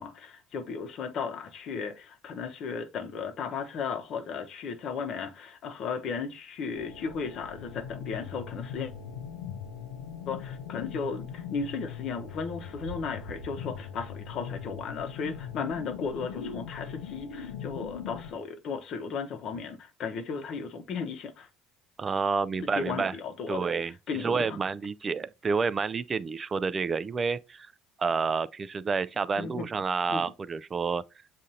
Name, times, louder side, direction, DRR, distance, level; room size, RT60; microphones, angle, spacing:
voice 1, 0.0-8.9 10.3-21.5 22.7-23.7 24.1-24.6 29.4-29.7 30.1-30.2, left 5 dB, 55° left, 0.8 m, -35 dB
sound 1, 6.7-18.3, left 7 dB, 85° left, 0.5 m, -40 dB
voice 2, 22.0-23.2 23.5-27.7 28.0-31.0, right 5 dB, 30° right, 0.3 m, -29 dB
7.3 x 2.5 x 2.7 m
hypercardioid pair, 75°, 0 cm